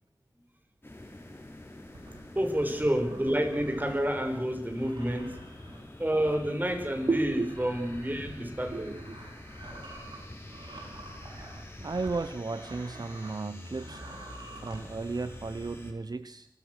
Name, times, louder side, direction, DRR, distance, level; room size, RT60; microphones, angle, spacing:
sound 1, 0.8-15.9, left 1 dB, 30° left, 7.0 m, -46 dB
sound 2, 1.9-13.4 13.7-14.8, right 2 dB, 80° right, 7.9 m, -49 dB
voice 1, 2.3-5.4 6.0-9.0, equal, 25° right, 6 dB, 5.9 m, -29 dB
voice 2, 7.1-7.5 8.7-9.2 11.8-14.0 14.6-16.5, right 3 dB, 60° right, 12 dB, 1.0 m, -34 dB
27.5 x 22.5 x 6.7 m, 0.78 s
wide cardioid pair, 45°, 8 cm